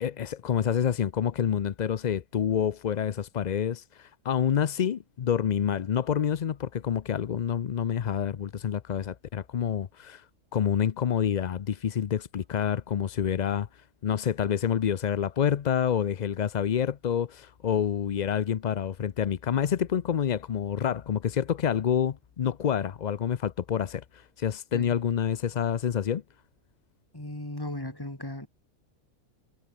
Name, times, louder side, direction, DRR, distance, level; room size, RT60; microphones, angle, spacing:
voice 1, 0.0-10.2 10.5-13.7 14.0-24.0 24.4-26.2, left 8 dB, 70° left, 0.4 m, -27 dB
voice 2, 27.1-28.5, left 1 dB, 15° left, 3.5 m, -36 dB
omnidirectional pair, 1.5 m